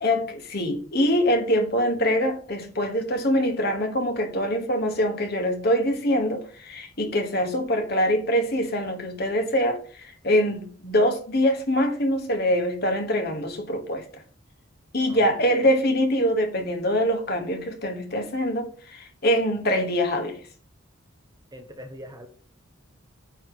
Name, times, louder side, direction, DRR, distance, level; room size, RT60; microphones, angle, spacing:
voice 1, 0.0-14.2 14.9-20.4, equal, 45° left, 1.4 m, -24 dB
voice 2, 15.1-15.7 21.5-22.3, equal, 15° right, 0.9 m, -43 dB
9.3 x 3.2 x 6.1 m
head